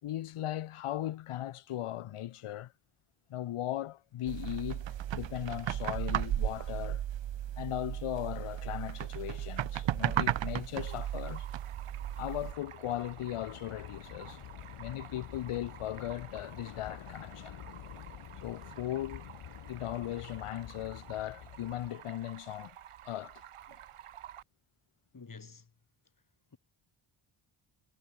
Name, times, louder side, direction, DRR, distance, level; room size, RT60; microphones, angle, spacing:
voice 1, 0.0-2.7 3.3-4.9 5.1-7.0 7.6-11.5 12.2-14.4 14.8-17.6 18.4-19.3 19.7-22.8 23.0-23.4, left 13 dB, 90° left, 3.5 m, -38 dB
sound 1, 4.3-12.5, right 11 dB, 60° right, 1.1 m, -35 dB
Train / Subway metro underground, 9.0-9.1 9.3-21.9, left 10 dB, 70° left, 2.1 m, -49 dB
Stream, 10.8-24.4, right 11 dB, 80° right, 3.4 m, -52 dB
voice 2, 25.1-25.7 26.5-26.6, left 4 dB, 40° left, 7.2 m, -49 dB
cardioid pair, 65°, 50 cm